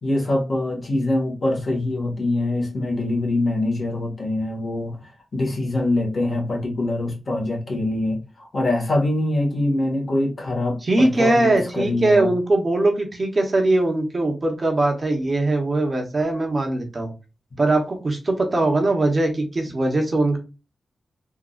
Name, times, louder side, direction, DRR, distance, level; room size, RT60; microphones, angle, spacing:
voice 1, 0.0-5.0 5.3-12.3, left 2 dB, 45° left, 1.6 m, -24 dB
voice 2, 10.8-17.1 17.6-20.4, right 2 dB, 35° right, 1.0 m, -21 dB
3.7 x 2.7 x 2.4 m
wide cardioid pair, 110°, 0 cm